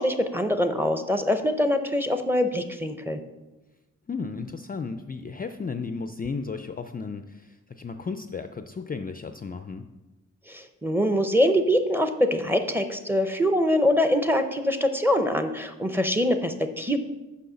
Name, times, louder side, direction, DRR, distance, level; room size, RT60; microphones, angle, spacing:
voice 1, 0.0-3.2 10.5-17.0, equal, 5° right, 7 dB, 0.6 m, -24 dB
voice 2, 4.1-9.8, left 4 dB, 30° left, 8 dB, 0.4 m, -34 dB
6.2 x 5.6 x 6.9 m, 1.1 s
wide cardioid pair, 115°, 31 cm